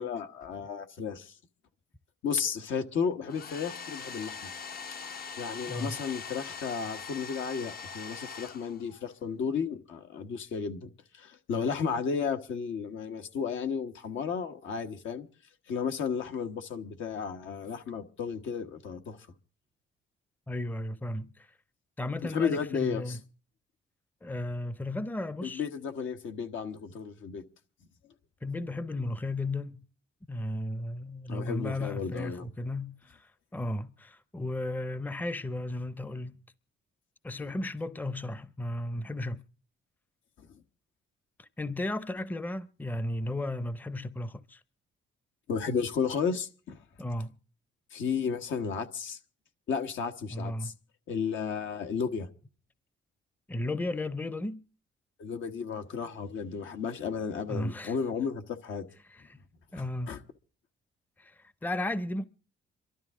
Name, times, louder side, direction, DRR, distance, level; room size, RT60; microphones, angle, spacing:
voice 1, 0.0-1.3 2.2-4.4 5.4-15.3 15.7-19.2 22.3-23.2 25.4-27.4 31.3-32.5 40.5-40.6 45.5-46.8 47.9-49.2 49.7-50.7 51.1-52.3 55.2-58.9 59.7-60.2, left 6 dB, 75° left, 1.3 m, -33 dB
Domestic sounds home sounds, 3.2-9.1, left 6 dB, 50° left, 0.8 m, -42 dB
voice 2, 20.5-21.5 22.0-23.2 24.2-25.6 28.4-29.8 30.3-36.4 37.2-39.4 41.4-44.6 47.0-47.3 50.3-50.7 53.5-54.6 57.5-58.0 59.1-59.4 59.7-60.2 61.2-62.2, left 1 dB, 10° left, 0.6 m, -34 dB
27.0 x 12.5 x 3.6 m
cardioid pair, 90°, 20 cm